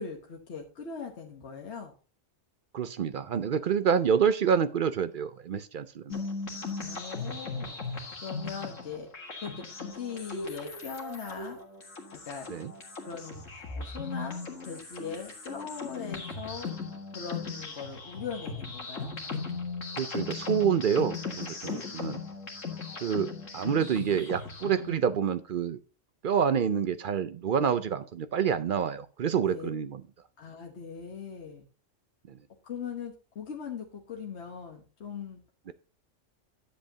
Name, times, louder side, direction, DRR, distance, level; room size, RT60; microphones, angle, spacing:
voice 1, 0.0-1.9 6.8-9.1 9.4-11.6 12.1-12.5 13.0-16.9 17.1-19.1 21.6-21.9 29.3-29.7 30.4-31.7 32.6-35.4, left 6 dB, 60° left, 1 dB, 1.5 m, -40 dB
voice 2, 2.7-6.2 12.5-12.7 20.0-22.2 23.0-25.8 26.2-30.0 35.7-35.8, right 7 dB, 55° right, 13 dB, 0.6 m, -27 dB
sound 1, 6.1-25.0, left 4 dB, 75° left, 2.0 m, -38 dB
10.5 x 7.7 x 2.8 m, 0.35 s
omnidirectional pair, 1.3 m